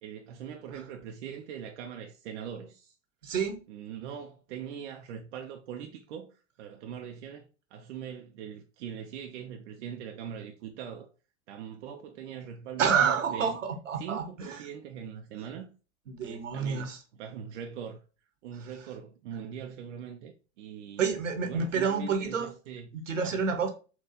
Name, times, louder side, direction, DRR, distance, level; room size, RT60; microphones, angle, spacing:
voice 1, 0.0-3.0 3.7-11.1 11.5-13.6 14.0-15.7 16.2-18.0 18.4-22.9 23.2-23.4, right 8 dB, 70° right, 0.6 m, -42 dB
voice 2, 3.2-3.6 12.8-14.6 16.1-17.0 21.0-22.5 23.1-23.7, right 6 dB, 85° right, 1.1 m, -28 dB
4.3 x 2.4 x 3.8 m
hypercardioid pair, 95°, 37 cm